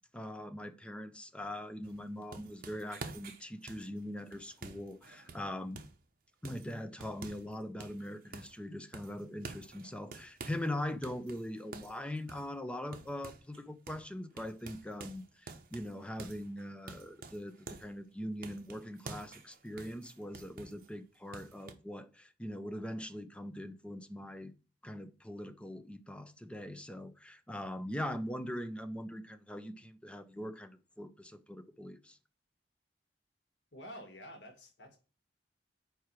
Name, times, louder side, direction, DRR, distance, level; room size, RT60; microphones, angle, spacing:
voice 1, 0.1-5.8 6.4-24.5 24.8-32.2, left 1 dB, 5° left, 0.5 m, -42 dB
sound 1, 1.8-6.0 6.4-7.5 7.8-8.6 8.9-10.7 11.0-13.6 13.9-14.1 14.4-17.9 18.4-20.9 21.3-21.7, right 3 dB, 55° right, 0.9 m, -49 dB
voice 2, 33.7-35.0, equal, 85° left, 1.5 m, -49 dB
4.8 x 4.7 x 5.9 m
head